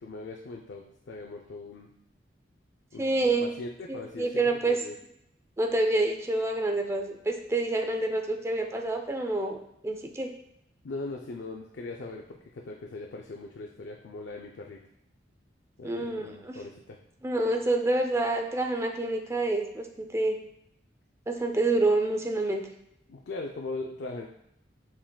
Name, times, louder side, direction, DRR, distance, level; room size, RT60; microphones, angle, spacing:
voice 1, 0.0-1.9 2.9-5.0 10.8-14.8 15.8-17.0 23.1-24.3, left 3 dB, 65° left, 1 dB, 0.4 m, -40 dB
voice 2, 3.0-3.5 3.9-4.8 5.6-9.6 9.8-10.3 15.8-16.5 17.2-20.4 21.3-22.6, right 2 dB, 15° right, 4 dB, 0.4 m, -27 dB
6.0 x 3.7 x 2.2 m, 0.77 s
head